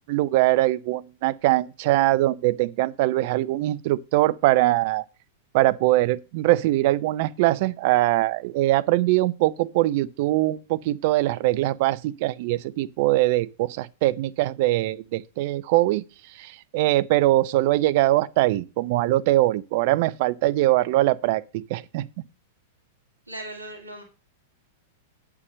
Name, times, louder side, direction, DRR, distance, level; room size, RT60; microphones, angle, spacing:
voice 1, 0.1-5.0 5.5-22.1, right 17 dB, 50° right, 0.5 m, -22 dB
voice 2, 23.3-24.0, right 1 dB, 90° right, 2.1 m, -37 dB
8.8 x 6.9 x 5.4 m
figure-of-eight pair, 95°, 0 cm